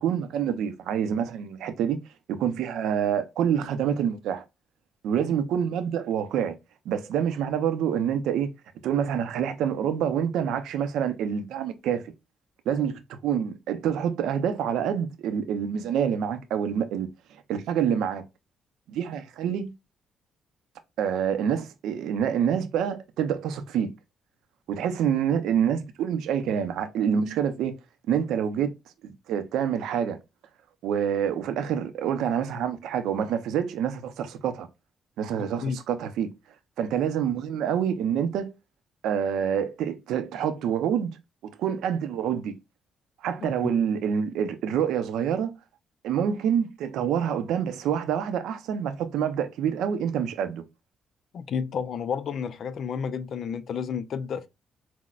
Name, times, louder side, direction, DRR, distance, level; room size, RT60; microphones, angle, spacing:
voice 1, 0.0-2.0 2.3-4.4 5.0-6.6 6.9-8.5 8.8-12.1 12.7-17.1 17.5-18.2 18.9-19.7 21.0-23.9 24.7-27.7 28.1-28.7 29.0-30.2 30.8-34.7 35.2-36.3 36.8-38.5 39.0-41.1 41.4-42.6 43.2-45.6 46.0-50.6, right 8 dB, 85° right, 0.6 m, -27 dB
voice 2, 51.3-54.5, left 6 dB, 60° left, 0.4 m, -31 dB
6.0 x 2.1 x 2.4 m
cardioid pair, 90°, 0 cm